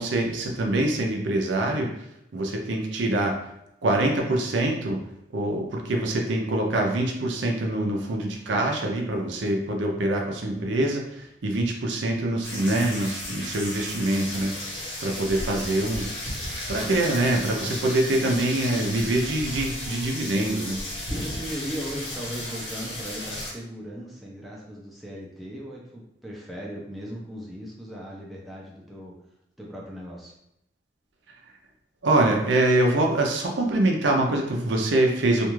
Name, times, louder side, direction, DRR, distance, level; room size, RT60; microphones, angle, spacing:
voice 1, 0.0-1.9 2.3-3.3 3.8-5.0 5.3-16.1 16.7-20.8 32.0-35.5, right 1 dB, 80° right, 1 dB, 0.5 m, -24 dB
sound 1, 12.4-23.5, left 1 dB, 85° left, 1.1 m, -34 dB
voice 2, 21.1-29.2 29.6-30.3, equal, ahead, -5 dB, 0.4 m, -37 dB
2.5 x 2.3 x 3.0 m, 0.81 s
head